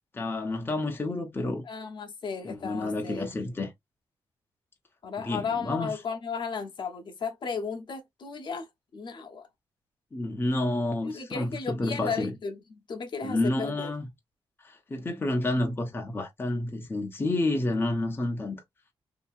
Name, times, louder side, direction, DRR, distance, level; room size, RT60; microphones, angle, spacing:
voice 1, 0.1-1.6 2.4-3.7 5.2-5.9 10.1-12.3 13.2-14.1 14.6-18.6, left 2 dB, 25° left, 0.7 m, -29 dB
voice 2, 1.6-3.3 5.0-8.7 8.9-9.5 11.0-13.9, left 5 dB, 60° left, 0.8 m, -35 dB
2.8 x 2.7 x 2.4 m
cardioid pair, 100°, 9 cm